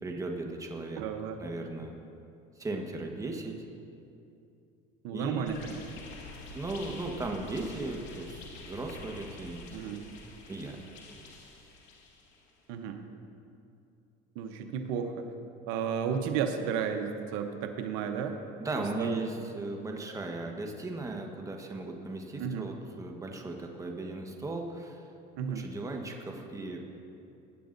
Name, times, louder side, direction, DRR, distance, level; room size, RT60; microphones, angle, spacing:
voice 1, 0.0-1.0 1.4-2.0 2.6-3.6 5.1-5.6 6.5-10.1 10.5-10.8 18.6-25.1 25.5-26.8, right 2 dB, 15° right, 2 dB, 1.3 m, -37 dB
voice 2, 1.0-1.4 5.0-5.7 9.7-10.0 12.7-13.0 14.3-15.3 15.7-18.4 19.0-19.2 22.4-22.7 25.4-25.6, right 7 dB, 80° right, 5 dB, 0.9 m, -33 dB
sound 1, 5.5-12.5, left 3 dB, 70° left, 2.1 m, -47 dB
20.5 x 9.1 x 2.6 m, 2.6 s
supercardioid pair, 105°, 20 cm